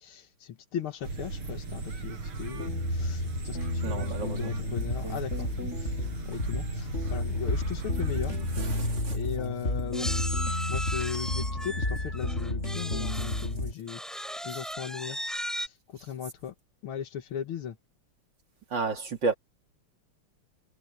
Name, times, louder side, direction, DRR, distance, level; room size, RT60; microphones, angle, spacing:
voice 1, 0.0-5.9 6.3-8.4 9.1-10.1 10.7-14.0 14.4-15.2 15.5-15.7 16.0-16.5 16.8-17.8, left 9 dB, 75° left, 2.1 m, -38 dB
sound 1, 1.0-9.0, right 3 dB, 75° right, 5.9 m, -37 dB
sound 2, 2.6-13.7, left 2 dB, 30° left, 6.1 m, -31 dB
voice 2, 3.8-4.5 8.5-9.4 13.1-13.2 14.5-14.6 18.7-19.3, right 4 dB, 55° right, 3.7 m, -32 dB
sound 3, 8.5-8.6 8.8-9.0 9.9-13.5 13.9-15.7, equal, ahead, 6.6 m, -36 dB
omnidirectional pair, 2.4 m